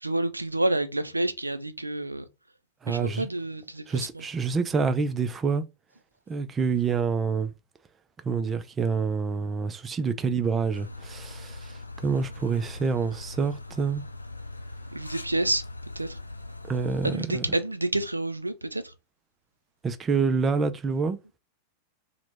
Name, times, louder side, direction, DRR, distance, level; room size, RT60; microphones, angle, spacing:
voice 1, 0.0-2.2 2.9-4.2 14.9-15.6 16.0-16.2 17.0-18.8, right 1 dB, 85° right, 0.4 m, -28 dB
voice 2, 2.8-3.3 3.9-5.6 6.3-7.5 8.2-14.0 16.7-17.6 19.8-21.2, right 5 dB, 20° right, 0.4 m, -27 dB
sound 1, 10.7-17.2, left 2 dB, 80° left, 0.3 m, -41 dB
2.9 x 2.1 x 3.3 m
figure-of-eight pair, 90°, 0 cm